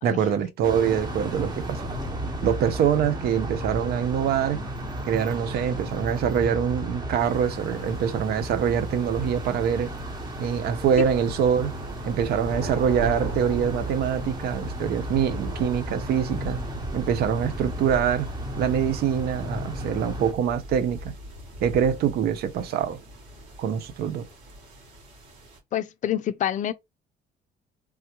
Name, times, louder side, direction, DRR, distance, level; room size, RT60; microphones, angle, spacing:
voice 1, 0.0-1.9 2.4-4.6 5.1-9.9 10.4-11.7 12.0-16.6 16.9-18.3 18.6-21.1 21.6-23.0 23.6-24.3, right 8 dB, 70° right, 0.6 m, -24 dB
sound 1, 0.6-20.3, right 1 dB, 25° right, 1.0 m, -34 dB
sound 2, 7.2-25.6, equal, 85° right, 2.0 m, -39 dB
voice 2, 25.7-26.7, left 11 dB, 50° left, 0.4 m, -27 dB
3.4 x 2.2 x 2.9 m
cardioid pair, 110°, 17 cm